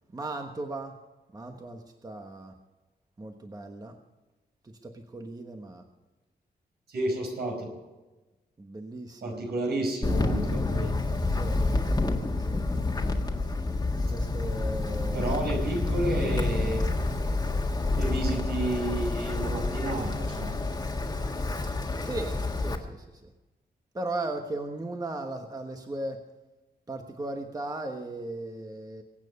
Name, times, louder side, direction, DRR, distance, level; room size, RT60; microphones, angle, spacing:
voice 1, 0.1-0.9 1.3-2.5 3.2-4.0 4.6-5.8 8.6-9.4 11.3-11.6 12.4-12.6 14.1-15.3 22.0-23.3 23.9-26.2 26.9-29.0, right 2 dB, 20° right, 4 dB, 1.2 m, -37 dB
voice 2, 6.9-7.7 9.2-11.0 15.1-16.8 17.9-20.5, right 2 dB, 80° right, 2 dB, 5.2 m, -31 dB
Wind, 10.0-22.8, left 2 dB, 25° left, 1.7 m, -28 dB
23.0 x 9.1 x 5.4 m, 1.1 s
wide cardioid pair, 155°, 17 cm